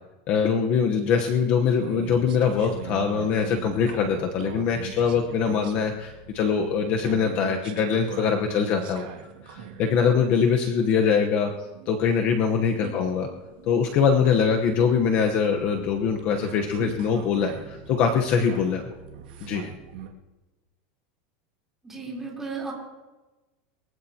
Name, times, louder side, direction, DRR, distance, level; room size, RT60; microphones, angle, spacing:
voice 1, 0.3-9.1 9.4-11.5 11.9-13.3 13.6-18.9 19.4-19.7, left 6 dB, 35° left, 3 dB, 1.0 m, -23 dB
sound 1, 1.8-20.1, right 8 dB, 85° right, 2.2 m, -42 dB
voice 2, 21.8-22.7, right 4 dB, 10° right, -4 dB, 3.7 m, -34 dB
23.5 x 16.0 x 2.9 m, 1.1 s
supercardioid pair, 170°, 5 cm